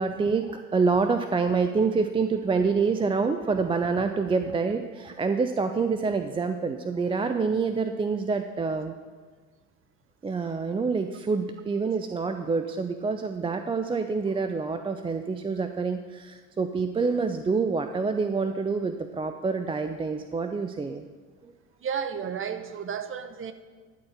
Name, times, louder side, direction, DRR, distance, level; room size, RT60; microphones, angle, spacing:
voice 1, 0.0-8.9 10.2-21.0 21.4-21.5, right 4 dB, 15° right, 7 dB, 0.5 m, -27 dB
voice 2, 21.8-23.5, right 7 dB, 30° right, 10 dB, 1.0 m, -32 dB
12.0 x 4.5 x 8.0 m, 1.5 s
hypercardioid pair, 75°, 43 cm